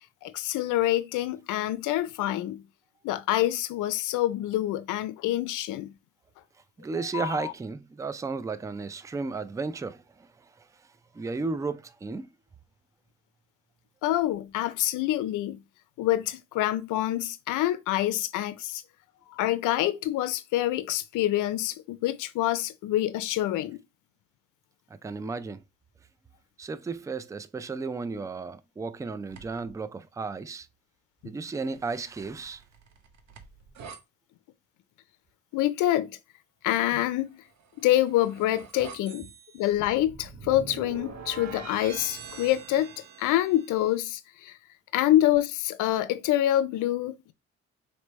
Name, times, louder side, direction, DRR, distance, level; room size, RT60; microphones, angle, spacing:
voice 1, 0.2-2.6 3.0-5.9 7.0-7.5 14.0-15.6 16.0-18.8 19.3-23.8 35.5-36.1 36.6-37.3 37.8-39.3 39.5-42.9 43.2-44.6 44.9-47.3, left 14 dB, 85° left, 0.5 m, -26 dB
voice 2, 6.8-10.3 11.1-12.3 25.0-25.6 26.6-30.7 31.2-32.6, right 4 dB, 10° right, 0.3 m, -34 dB
sound 1, 29.3-29.7 31.6-34.0 37.5-43.9, right 5 dB, 65° right, 0.9 m, -45 dB
4.1 x 3.3 x 3.1 m
cardioid pair, 90°, 30 cm